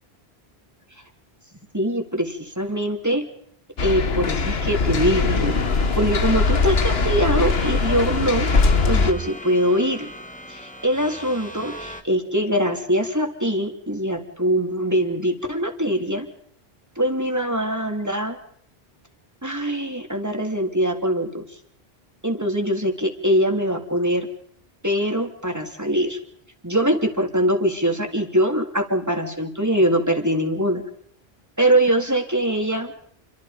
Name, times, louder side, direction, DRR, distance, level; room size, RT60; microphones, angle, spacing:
voice 1, 1.7-3.2 3.8-5.6 6.0-8.5 8.9-10.1 10.5-16.3 17.0-18.4 19.4-21.4 22.2-24.3 24.8-26.2 26.6-30.8 31.6-32.9, equal, 15° right, 4 dB, 3.4 m, -22 dB
sound 1, 3.8-9.1, left 4 dB, 70° left, 1.6 m, -21 dB
sound 2, 5.1-12.0, equal, 5° left, 2.1 m, -38 dB
30.0 x 24.0 x 5.3 m, 0.65 s
omnidirectional pair, 1.1 m